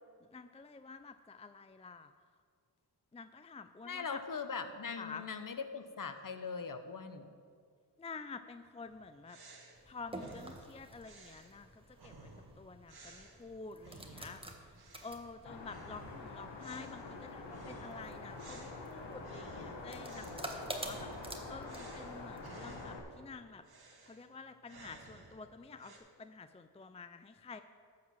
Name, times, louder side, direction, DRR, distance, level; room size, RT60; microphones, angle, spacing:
voice 1, 0.3-2.1 3.1-4.2 5.0-5.2 8.0-9.4 9.9-12.3 12.6-14.8 15.0-23.6 24.1-27.6, left 4 dB, 15° left, 10 dB, 0.4 m, -49 dB
voice 2, 3.8-7.3, left 5 dB, 45° left, 9 dB, 1.0 m, -41 dB
sound 1, 8.9-14.5 14.7-15.3 15.6-23.2 23.6-26.0, right 2 dB, 55° right, 1.8 m, -56 dB
sound 2, 9.8-22.8, right 1 dB, 10° right, 1.4 m, -50 dB
sound 3, 15.5-23.0, left 3 dB, 70° left, 1.5 m, -46 dB
12.5 x 4.7 x 7.5 m, 2.1 s
supercardioid pair, 45°, 45 cm